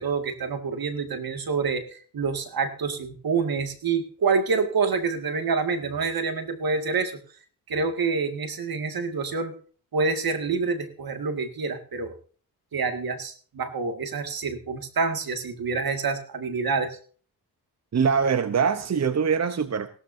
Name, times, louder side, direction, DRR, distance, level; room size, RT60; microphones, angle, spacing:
voice 1, 0.0-7.2 7.7-9.6 9.9-12.1 12.7-17.0, right 4 dB, 65° right, 7 dB, 2.1 m, -27 dB
voice 2, 17.9-19.9, right 6 dB, 45° right, 11 dB, 0.9 m, -23 dB
17.0 x 13.0 x 2.7 m, 0.41 s
cardioid pair, 70°, 38 cm